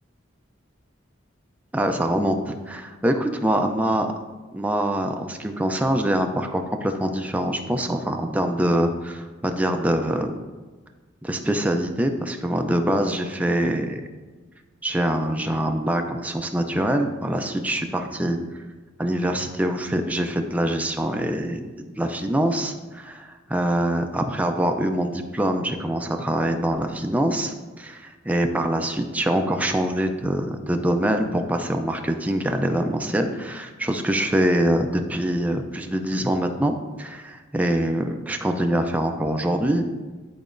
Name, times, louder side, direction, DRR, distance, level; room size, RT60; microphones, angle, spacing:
voice 1, 1.7-4.1 4.5-10.3 11.2-14.0 14.8-18.4 19.0-21.7 22.0-39.9, right 1 dB, 10° right, 4 dB, 0.4 m, -24 dB
10.5 x 4.0 x 2.5 m, 1.3 s
head